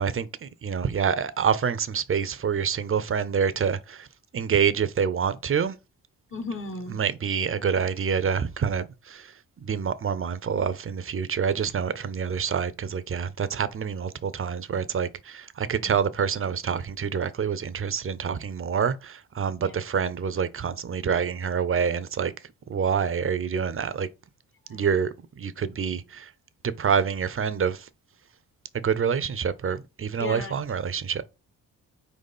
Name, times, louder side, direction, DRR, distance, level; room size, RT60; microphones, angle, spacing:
voice 1, 0.0-4.1 4.3-5.8 6.9-9.3 9.6-22.3 22.7-24.1 24.7-25.1 25.4-26.3 26.8-27.9 28.7-31.2, right 7 dB, 40° right, 0.7 m, -27 dB
voice 2, 6.3-7.0 15.8-16.0 19.6-19.8 24.7-24.9 30.2-30.6, left 3 dB, 35° left, 1.2 m, -35 dB
4.7 x 4.1 x 5.3 m
cardioid pair, 90°, 35 cm